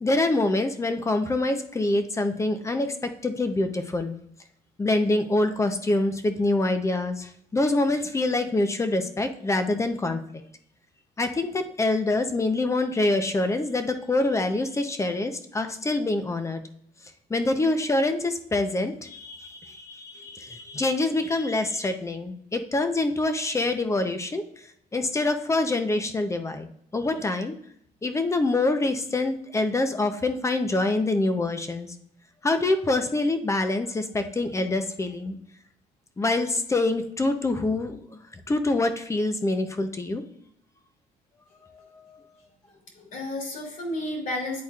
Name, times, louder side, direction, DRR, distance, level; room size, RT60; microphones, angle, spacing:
voice 1, 0.0-4.2 4.8-10.2 11.2-16.6 17.3-24.4 24.9-26.7 26.9-27.5 28.0-31.9 32.4-35.4 36.2-38.0 38.5-40.2 41.6-42.2, left 2 dB, 15° left, 8 dB, 0.7 m, -25 dB
voice 2, 42.7-44.6, left 1 dB, 50° left, -1 dB, 2.3 m, -32 dB
10.5 x 4.1 x 2.4 m, 0.70 s
cardioid pair, 110°, 17 cm